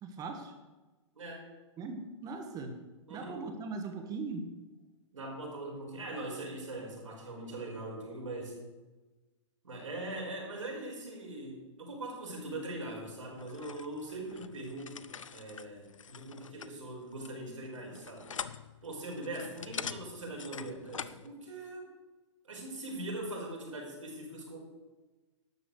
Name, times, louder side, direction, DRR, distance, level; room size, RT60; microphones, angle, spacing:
voice 1, 0.0-0.5 1.8-2.8 3.1-4.5, right 4 dB, 25° right, 5 dB, 1.5 m, -39 dB
voice 2, 3.1-3.4 5.1-8.6 9.6-18.3 18.8-21.9 22.4-24.6, right 2 dB, 85° right, -1 dB, 5.1 m, -41 dB
sound 1, 13.4-21.3, left 7 dB, 90° left, 0.6 m, -45 dB
12.0 x 7.7 x 6.6 m, 1.2 s
hypercardioid pair, 130°, 16 cm